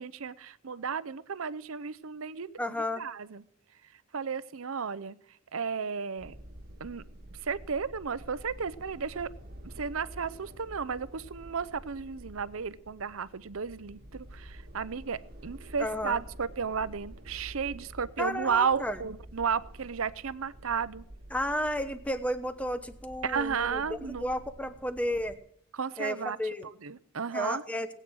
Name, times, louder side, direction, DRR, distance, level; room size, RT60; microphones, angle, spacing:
voice 1, 0.0-2.6 3.0-3.4 4.1-5.2 5.5-6.3 6.8-7.0 7.4-9.3 9.6-21.0 23.2-24.3 25.7-26.4 26.8-27.6, right 6 dB, 75° right, 16 dB, 0.7 m, -33 dB
voice 2, 2.6-3.0 15.8-16.2 18.2-19.0 21.3-25.4 26.0-26.7 27.3-27.9, left 1 dB, 5° left, 10 dB, 0.9 m, -32 dB
sound 1, 6.2-25.4, right 1 dB, 45° right, 1.8 m, -49 dB
20.0 x 9.0 x 6.3 m, 0.70 s
head